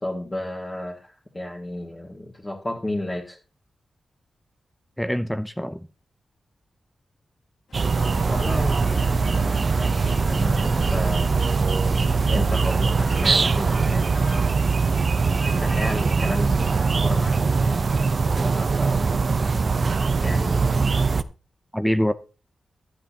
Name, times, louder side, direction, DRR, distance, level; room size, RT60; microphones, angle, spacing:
voice 1, 0.0-3.4 8.3-14.1 15.5-19.1 20.2-21.1, left 1 dB, 20° left, 1.9 m, -33 dB
voice 2, 5.0-5.8 20.8-20.9 21.7-22.1, equal, 5° left, 0.5 m, -24 dB
sound 1, 7.7-16.2, left 2 dB, 85° left, 3.3 m, -44 dB
sound 2, 7.7-21.2, right 4 dB, 50° right, 0.6 m, -21 dB
15.0 x 10.5 x 2.9 m
wide cardioid pair, 95°, 0 cm